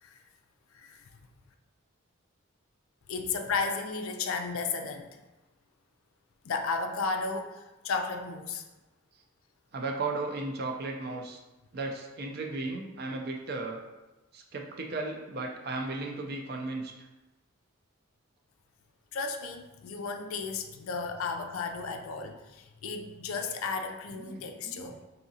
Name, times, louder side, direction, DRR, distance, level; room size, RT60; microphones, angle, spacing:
voice 1, 0.7-1.0 3.1-5.1 6.4-8.6 19.1-25.0, left 4 dB, 75° left, 5 dB, 0.4 m, -34 dB
voice 2, 9.7-11.4 11.7-13.8 14.3-17.1 24.2-24.9, right 3 dB, 45° right, 2 dB, 0.4 m, -35 dB
4.8 x 2.7 x 2.7 m, 1.1 s
head